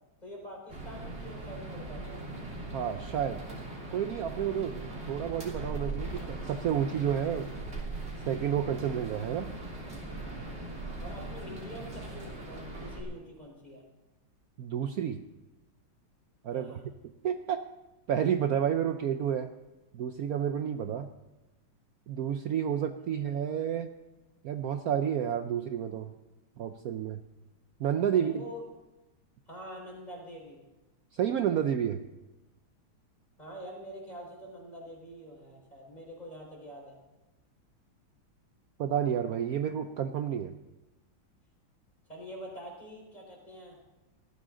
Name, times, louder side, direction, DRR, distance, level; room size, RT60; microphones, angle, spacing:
voice 1, 0.2-2.2 11.0-13.8 16.5-16.8 23.2-23.3 28.1-28.6 29.5-30.6 33.4-37.0 42.1-43.8, equal, 20° left, -1 dB, 4.1 m, -45 dB
sound 1, 0.7-13.0, right 2 dB, 30° right, 3.2 m, -40 dB
voice 2, 2.7-3.4 3.9-4.8 5.1-7.5 8.3-9.5 14.6-15.2 16.4-17.6 18.1-19.5 19.9-21.1 22.1-23.9 24.4-26.1 26.6-27.2 27.8-28.4 31.1-32.0 38.8-40.5, right 9 dB, 75° right, 8 dB, 0.8 m, -30 dB
19.5 x 14.0 x 3.8 m, 1.1 s
omnidirectional pair, 2.3 m